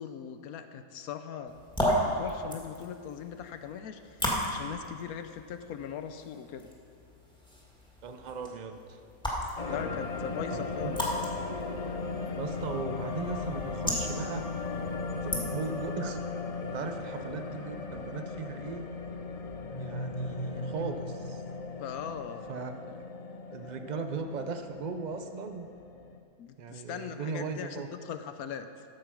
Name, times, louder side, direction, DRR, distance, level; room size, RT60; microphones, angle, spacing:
voice 1, 0.0-1.6 2.0-6.7 9.7-11.2 21.8-22.5 22.9-23.0 26.4-28.7, left 8 dB, 75° left, 9 dB, 1.1 m, -40 dB
sound 1, 1.5-15.9, equal, 5° left, 1.8 m, -36 dB
voice 2, 8.0-9.0 10.5-11.0 12.4-14.4 15.1-16.2 16.6-18.9 19.8-21.4 22.5-22.8 23.5-25.7 26.6-27.9, right 5 dB, 75° right, 7 dB, 0.4 m, -37 dB
sound 2, 9.6-26.2, left 4 dB, 55° left, 0.4 m, -37 dB
sound 3, 19.6-22.4, equal, 30° left, 1.1 m, -39 dB
13.0 x 6.9 x 5.9 m, 2.3 s
omnidirectional pair, 1.6 m